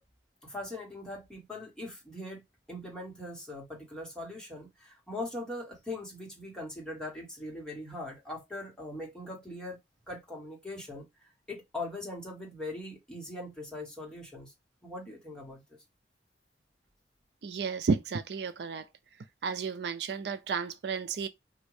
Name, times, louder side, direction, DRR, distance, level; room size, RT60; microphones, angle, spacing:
voice 1, 0.4-2.4 2.7-9.8 10.1-11.1 11.5-14.5 14.8-15.8, left 2 dB, 5° left, 1.5 m, -41 dB
voice 2, 17.4-18.8 19.4-21.3, right 5 dB, 70° right, 0.4 m, -32 dB
5.0 x 2.7 x 3.2 m
head